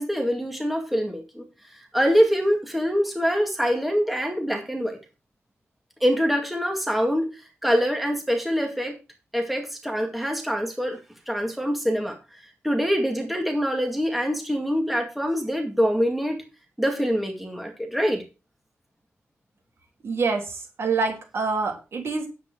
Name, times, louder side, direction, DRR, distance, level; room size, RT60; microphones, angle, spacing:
voice 1, 0.0-1.4 1.9-5.0 6.0-8.9 9.3-11.0 11.3-16.4 16.8-18.2, equal, ahead, 2 dB, 2.2 m, -24 dB
voice 2, 20.0-22.3, right 4 dB, 60° right, 2 dB, 3.4 m, -26 dB
9.6 x 8.3 x 4.7 m, 0.30 s
wide cardioid pair, 125°, 5 cm